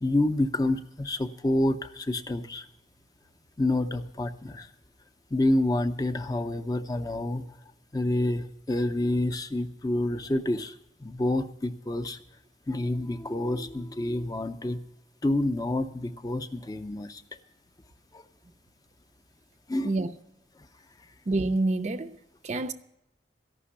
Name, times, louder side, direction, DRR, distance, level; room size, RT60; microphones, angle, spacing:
voice 1, 0.0-2.7 3.6-4.7 5.3-7.5 7.9-12.2 12.7-14.8 15.2-17.2 18.1-18.2 19.7-19.9, left 1 dB, 20° left, 0.5 m, -28 dB
voice 2, 21.3-22.2 22.4-22.7, right 2 dB, 35° right, 0.4 m, -27 dB
14.0 x 5.9 x 9.8 m
head